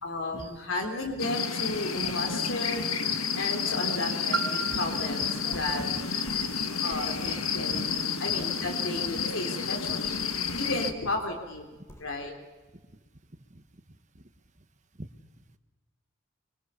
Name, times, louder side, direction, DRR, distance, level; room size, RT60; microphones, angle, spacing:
voice 1, 0.0-2.8 3.4-5.8 6.8-10.1 10.6-11.7 12.0-12.4, left 2 dB, 65° left, 3 dB, 3.6 m, -33 dB
sound 1, 1.2-10.9, left 6 dB, 90° left, 1.8 m, -30 dB
Piano, 4.3-9.8 10.5-10.6, right 6 dB, 50° right, 1.2 m, -40 dB
sound 2, 5.4-8.6 8.9-9.0 9.3-9.4 9.7-12.2, equal, 15° left, 3.2 m, -50 dB
voice 2, 7.2-7.8 8.6-8.7 9.1-9.3 15.0-15.1, right 1 dB, 35° right, 8 dB, 1.5 m, -43 dB
25.0 x 24.0 x 7.1 m, 1.2 s
head